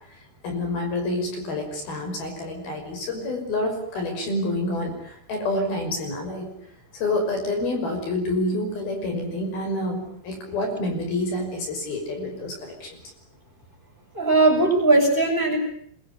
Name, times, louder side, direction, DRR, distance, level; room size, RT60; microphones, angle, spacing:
voice 1, 0.4-6.5 6.9-12.9, left 1 dB, 55° left, 4 dB, 7.6 m, -28 dB
voice 2, 14.2-15.6, right 2 dB, 10° right, 3 dB, 7.0 m, -19 dB
26.0 x 23.0 x 9.8 m, 0.65 s
omnidirectional pair, 5.4 m